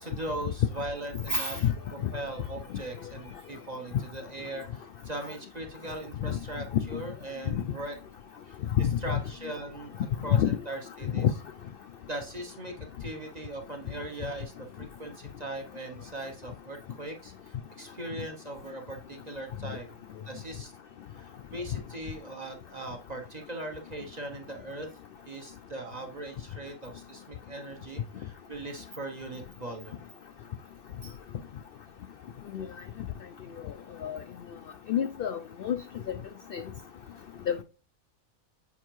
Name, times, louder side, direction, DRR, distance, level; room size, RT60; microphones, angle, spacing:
voice 1, 0.0-1.6 1.9-7.9 8.5-9.9 10.2-11.3 12.0-12.7 13.0-20.0 20.3-20.7 21.1-24.9 25.3-30.0, right 1 dB, 35° right, 0.8 m, -40 dB
voice 2, 1.3-1.7 7.5-7.6 8.8-8.9 10.3-10.5 11.1-11.3 32.5-32.6 34.0-34.2 34.9-35.8 36.5-36.6 37.5-37.6, left 8 dB, 70° left, 0.5 m, -26 dB
7.1 x 4.5 x 3.0 m
omnidirectional pair, 1.4 m